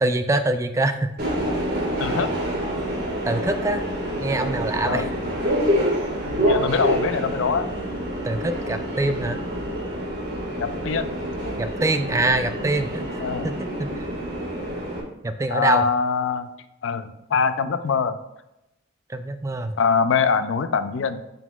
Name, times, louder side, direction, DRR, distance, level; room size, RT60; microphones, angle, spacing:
voice 1, 0.0-1.1 3.2-3.8 4.2-5.1 8.2-9.4 11.6-13.0 13.4-14.1 15.2-15.9 19.1-19.8, right 2 dB, 15° right, 9 dB, 0.3 m, -24 dB
Subway metro underground, 1.2-15.0, equal, 55° right, 1.5 m, -27 dB
voice 2, 6.3-7.7 10.6-11.2 13.2-13.5 15.5-16.5 16.8-18.2 19.8-21.2, left 5 dB, 70° left, 11 dB, 0.4 m, -23 dB
10.5 x 3.9 x 2.3 m, 0.91 s
head